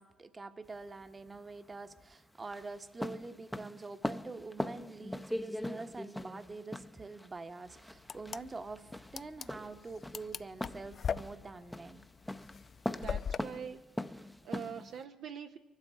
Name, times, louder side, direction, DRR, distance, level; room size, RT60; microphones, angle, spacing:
voice 1, 0.0-12.0, right 3 dB, 30° right, 9 dB, 1.1 m, -46 dB
sound 1, 0.6-15.0, left 1 dB, 5° left, 0.7 m, -42 dB
sound 2, 8.0-13.4, left 7 dB, 50° left, 0.4 m, -40 dB
voice 2, 12.9-13.8 14.1-15.6, right 7 dB, 65° right, 4 dB, 0.7 m, -44 dB
25.0 x 12.0 x 3.7 m, 1.2 s
hypercardioid pair, 45°, 0 cm